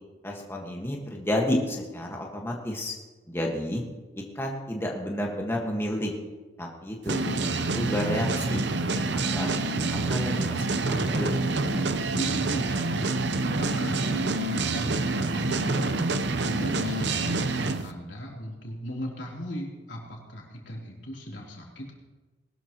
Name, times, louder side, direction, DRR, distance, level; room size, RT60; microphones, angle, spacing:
voice 1, 0.2-2.9 3.3-3.8 4.1-6.1 6.6-8.6 8.9-9.5 10.1-11.9, left 1 dB, 15° left, 0 dB, 1.5 m, -31 dB
sound 1, 7.1-17.8, right 3 dB, 70° right, 0.8 m, -27 dB
voice 2, 12.1-21.9, equal, 85° left, -2 dB, 3.3 m, -38 dB
20.5 x 12.5 x 3.0 m, 1.3 s
head